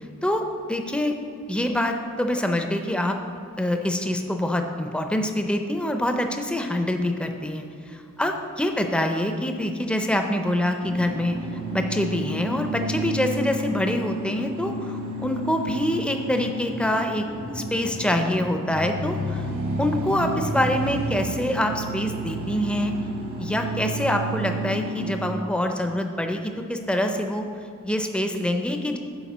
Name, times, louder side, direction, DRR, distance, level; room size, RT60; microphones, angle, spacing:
voice 1, 0.2-1.1 1.5-3.2 3.6-7.6 8.2-11.4 11.7-17.3 17.5-19.5 19.8-22.9 23.4-27.5 27.8-29.0, left 1 dB, 5° left, 5 dB, 0.4 m, -25 dB
sound 1, 10.8-25.4, right 1 dB, 70° right, 1.3 m, -31 dB
7.1 x 4.7 x 6.0 m, 2.6 s
head